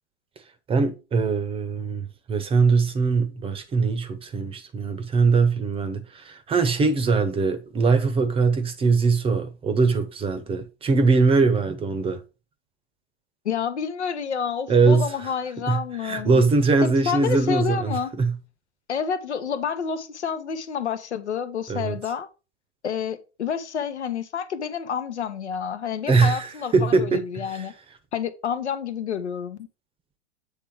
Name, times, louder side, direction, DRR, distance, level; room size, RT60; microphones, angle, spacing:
voice 1, 0.7-12.2 14.7-15.1 15.7-18.3 21.7-21.9 26.1-27.6, right 4 dB, 15° right, 0.8 m, -22 dB
voice 2, 13.4-16.4 16.8-18.1 18.9-22.3 22.8-27.7 28.1-29.6, left 7 dB, 80° left, 0.9 m, -29 dB
7.7 x 3.3 x 4.6 m
figure-of-eight pair, 105°, 34 cm